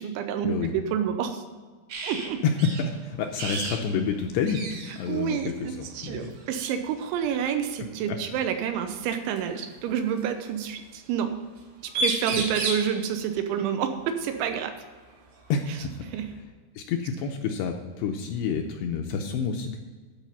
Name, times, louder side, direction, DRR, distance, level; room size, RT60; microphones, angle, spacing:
voice 1, 0.0-1.4 2.0-2.4 5.1-11.4 12.0-14.7 16.1-16.3, right 8 dB, 90° right, 6 dB, 3.2 m, -28 dB
sound 1, 1.9-2.3 2.6-2.8 3.4-3.8 4.1-4.2 4.5-5.0 6.2-6.4 8.1-8.2 9.4-10.2 11.6-11.7 11.9-12.9 14.8-14.9 15.4-16.4, right 2 dB, 75° right, 4.5 m, -31 dB
voice 2, 2.4-6.3 8.1-8.2 12.3-12.5 15.5-16.1 16.8-19.8, left 6 dB, 80° left, 3 dB, 2.5 m, -29 dB
12.5 x 5.1 x 7.0 m, 1.4 s
omnidirectional pair, 5.5 m